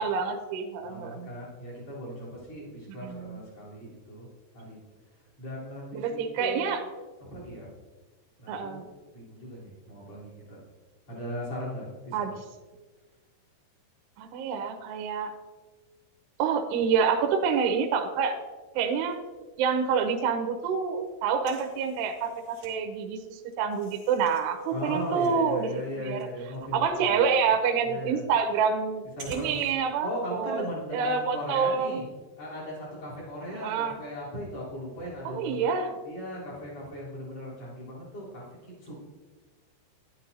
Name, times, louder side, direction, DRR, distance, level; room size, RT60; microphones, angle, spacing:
voice 1, 0.0-1.3 2.9-3.4 5.9-6.8 8.5-8.9 12.1-12.4 14.2-15.3 16.4-18.4 18.8-19.2 19.6-26.3 26.7-30.1 30.4-30.7 30.9-32.0 33.5-34.0 35.3-36.0, right 6 dB, 80° right, 5 dB, 2.6 m, -27 dB
voice 2, 0.8-4.3 4.5-4.8 5.4-6.7 7.3-7.7 8.4-8.8 9.1-10.6 11.1-12.3 24.7-27.2 27.9-28.2 29.2-29.6 30.0-32.1 32.4-35.7 36.0-38.4 38.8-38.9, equal, 35° left, -6 dB, 3.9 m, -38 dB
sound 1, 19.0-19.8 20.1-20.2 20.4-22.7 23.1-29.7, right 2 dB, 50° right, 1.5 m, -50 dB
11.5 x 11.0 x 2.6 m, 1.3 s
omnidirectional pair, 5.4 m